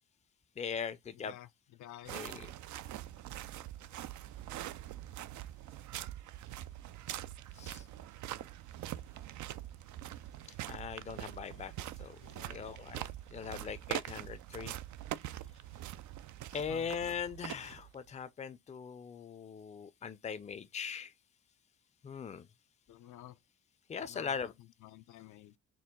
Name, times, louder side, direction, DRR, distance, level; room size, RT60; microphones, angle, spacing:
voice 1, 0.6-1.4 2.1-2.5 7.6-7.8 10.7-11.7 12.0-12.2 12.5-14.8 16.5-21.1 22.0-22.5 23.9-24.5, left 6 dB, 25° left, 0.5 m, -40 dB
voice 2, 1.1-1.5 1.8-2.2 12.2-12.8 16.5-16.9 22.9-23.4 24.0-24.5 24.8-25.6, left 13 dB, 75° left, 0.5 m, -52 dB
Footsteps Walking Boot Gravel to Grass, 2.0-18.1, right 13 dB, 70° right, 0.5 m, -44 dB
4.4 x 2.2 x 3.7 m
cardioid pair, 90°, 30 cm